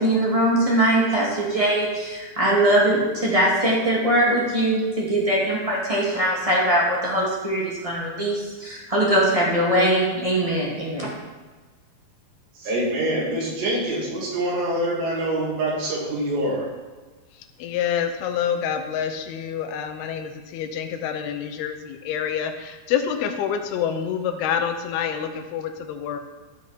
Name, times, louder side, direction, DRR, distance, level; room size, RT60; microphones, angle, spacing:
voice 1, 0.0-11.1, right 1 dB, 20° right, -5 dB, 0.8 m, -21 dB
voice 2, 12.5-16.7, right 1 dB, 80° right, -4 dB, 4.7 m, -25 dB
voice 3, 17.6-26.2, left 8 dB, 80° left, 7 dB, 2.6 m, -27 dB
14.0 x 6.4 x 4.2 m, 1.3 s
omnidirectional pair, 4.8 m